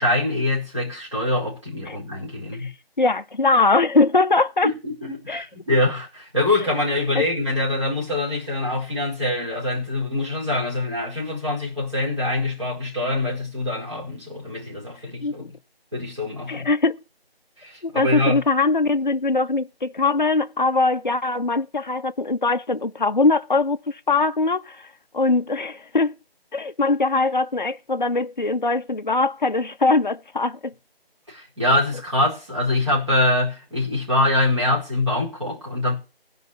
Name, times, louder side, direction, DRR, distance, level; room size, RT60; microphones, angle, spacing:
voice 1, 0.0-2.7 4.6-15.5 15.9-16.7 17.6-18.4 31.3-35.9, left 1 dB, 30° right, 4.8 m, -24 dB
voice 2, 3.0-4.7 5.3-5.5 7.1-7.2 15.2-15.3 16.5-17.0 17.8-24.9 25.1-26.1 26.5-30.7, left 3 dB, 50° left, 0.5 m, -21 dB
15.5 x 5.4 x 7.1 m
figure-of-eight pair, 175°, 31 cm